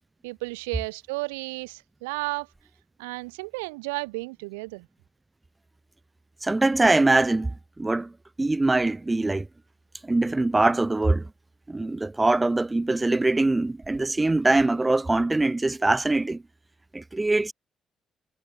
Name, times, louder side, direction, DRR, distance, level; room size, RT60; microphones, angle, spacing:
voice 1, 0.2-2.5 3.0-4.9, right 26 dB, 90° right, 0.5 m, -33 dB
voice 2, 6.4-8.1 8.4-9.5 10.0-11.3 11.7-16.4 16.9-17.5, right 2 dB, 20° right, 0.6 m, -23 dB
hypercardioid pair, 50°, 0 cm